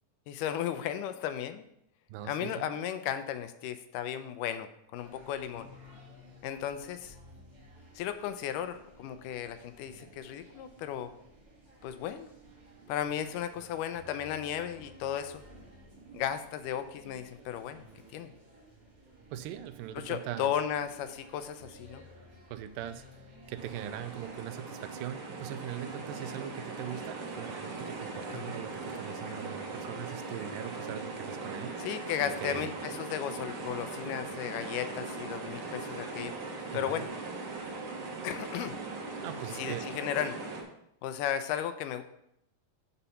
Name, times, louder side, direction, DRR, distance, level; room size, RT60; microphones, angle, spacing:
voice 1, 0.3-1.6 2.2-5.7 6.4-7.2 8.0-11.1 11.8-12.3 12.9-15.4 16.1-17.8 18.1-18.3 20.0-22.0 28.3-28.6 31.8-36.3 36.7-37.1 38.2-38.8 39.6-40.4 41.0-42.0, left 10 dB, 80° left, 10 dB, 2.0 m, -35 dB
voice 2, 2.1-2.7 19.3-20.5 22.5-23.0 23.5-31.8 32.4-32.7 36.7-37.0 39.2-39.9, right 11 dB, 80° right, 11 dB, 2.2 m, -41 dB
sound 1, 5.0-24.4, equal, 25° right, 0.8 m, -55 dB
sound 2, 23.6-40.6, right 3 dB, 50° right, 1.7 m, -40 dB
9.8 x 4.1 x 5.6 m, 0.77 s
omnidirectional pair, 4.0 m